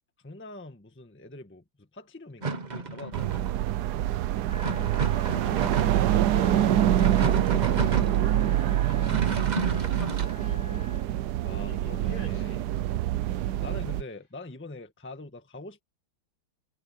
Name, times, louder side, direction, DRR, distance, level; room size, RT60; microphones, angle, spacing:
voice 1, 0.2-3.5 11.4-12.6 13.5-15.8, left 2 dB, 5° left, 1.2 m, -44 dB
sound 1, 2.4-3.5 4.6-6.1 6.8-8.2 8.8-10.4, right 3 dB, 30° right, 0.8 m, -32 dB
sound 2, 3.1-14.0, right 12 dB, 75° right, 0.9 m, -25 dB
Wind instrument woodwind instrument, 4.5-11.1, left 5 dB, 40° left, 4.4 m, -47 dB
voice 2, 4.8-9.3 9.7-11.1 11.6-12.6 13.4-13.6, left 2 dB, 75° left, 7.4 m, -45 dB
omnidirectional pair, 2.3 m